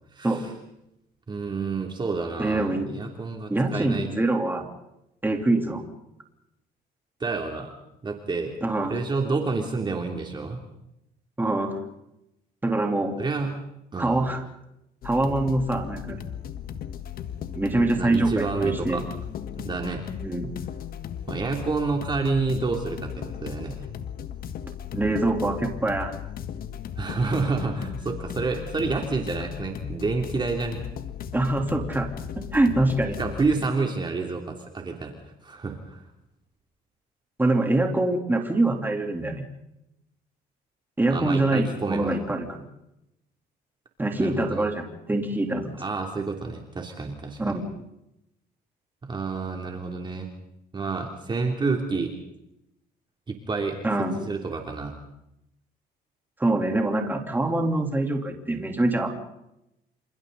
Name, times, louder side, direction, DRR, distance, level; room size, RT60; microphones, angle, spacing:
voice 1, 0.1-0.5 1.3-4.1 7.2-7.7 8.0-8.5 8.9-10.6 13.2-13.5 13.9-14.2 18.0-19.0 19.6-20.0 21.3-23.8 27.0-30.8 33.2-36.0 41.1-42.2 44.2-44.7 45.8-47.6 49.0-50.3 50.7-52.1 53.3-53.8 54.2-55.0, right 4 dB, 25° right, 2 dB, 3.1 m, -29 dB
voice 2, 2.4-3.0 3.5-4.7 5.2-5.8 8.6-9.0 11.4-11.8 12.6-13.2 14.0-14.4 15.0-16.2 17.5-19.0 20.2-20.5 24.9-26.1 31.3-32.1 32.4-33.2 37.4-39.5 41.0-42.7 44.0-45.8 47.4-47.7 53.8-54.2 56.4-59.1, right 2 dB, 10° right, 3 dB, 3.5 m, -24 dB
sound 1, 15.0-33.7, left 8 dB, 60° left, 1.5 m, -36 dB
28.5 x 27.5 x 4.1 m, 0.84 s
cardioid pair, 110°, 17 cm